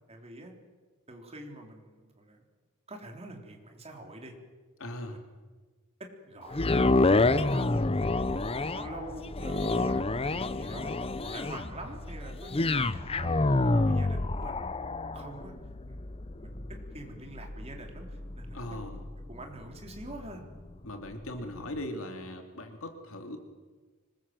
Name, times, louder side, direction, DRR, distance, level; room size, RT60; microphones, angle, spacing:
voice 1, 0.1-0.5 1.1-2.4 2.9-4.3 5.1-5.2 6.0-7.8 8.3-14.6 15.0-15.6 15.9-18.6 19.3-20.4, right 2 dB, 30° right, 3 dB, 3.7 m, -46 dB
voice 2, 4.8-5.2 18.5-19.0 20.8-23.4, left 1 dB, 65° left, 5 dB, 3.0 m, -39 dB
sound 1, 6.5-20.7 21.2-21.3, left 2 dB, 25° left, 0.7 m, -29 dB
25.0 x 21.0 x 7.7 m, 1.4 s
head